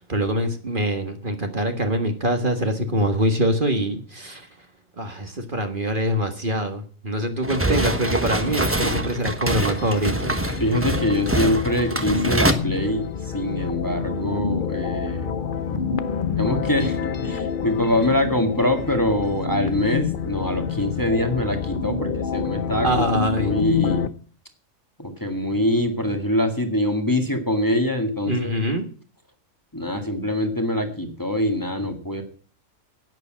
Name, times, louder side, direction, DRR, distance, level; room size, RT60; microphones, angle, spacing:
voice 1, 0.0-4.5 5.0-10.4 22.8-23.5 28.3-28.8, right 1 dB, 40° right, 5 dB, 1.7 m, -24 dB
sound 1, 7.4-12.5, right 1 dB, 10° right, 1.1 m, -25 dB
sound 2, 9.4-24.1, left 7 dB, 45° left, 0.8 m, -28 dB
voice 2, 10.6-15.3 15.7-16.0 16.3-23.1 23.4-24.1 25.0-28.5 29.7-32.2, left 1 dB, 15° left, 5 dB, 1.8 m, -24 dB
11.0 x 9.8 x 7.5 m, 0.41 s
omnidirectional pair, 1.4 m